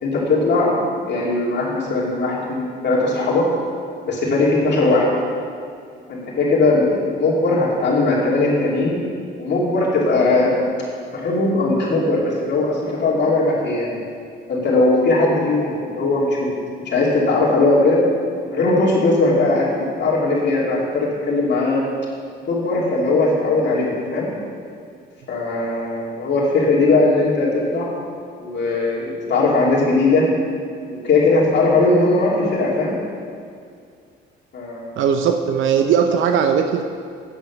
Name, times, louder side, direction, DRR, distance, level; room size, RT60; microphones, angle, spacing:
voice 1, 0.0-3.4 4.0-5.1 6.1-8.9 9.4-10.6 11.1-13.9 14.5-16.5 16.8-18.0 18.4-19.7 20.0-21.8 22.5-24.3 25.3-27.9 28.4-30.3 30.9-32.9 34.5-35.0, left 2 dB, 60° left, -5 dB, 2.4 m, -19 dB
voice 2, 35.0-36.8, right 7 dB, 75° right, 6 dB, 0.6 m, -18 dB
9.1 x 8.4 x 5.7 m, 2.2 s
cardioid pair, 90°, 20 cm